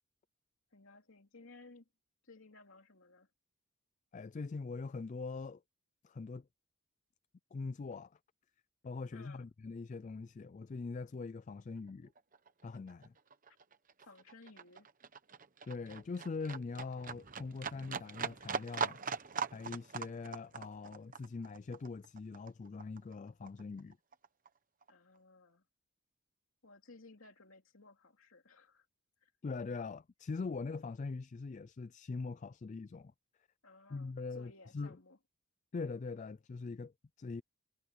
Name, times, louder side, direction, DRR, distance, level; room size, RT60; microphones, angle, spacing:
voice 1, 0.7-1.9 2.2-3.3 9.1-9.4 14.1-14.9 24.9-25.6 26.6-28.9 29.2-29.3 33.6-35.2, left 3 dB, 70° left, 2.9 m, -58 dB
voice 2, 4.1-5.6 6.0-6.5 7.5-8.2 8.8-12.1 12.6-13.1 15.7-19.0 19.5-24.0 29.4-33.1 33.9-35.0 35.7-37.4, left 4 dB, 35° left, 0.3 m, -42 dB
Livestock farm animals working animals, 11.8-11.9 12.2-23.1 23.5-24.5 24.8-24.9, right 5 dB, 40° right, 1.0 m, -41 dB
head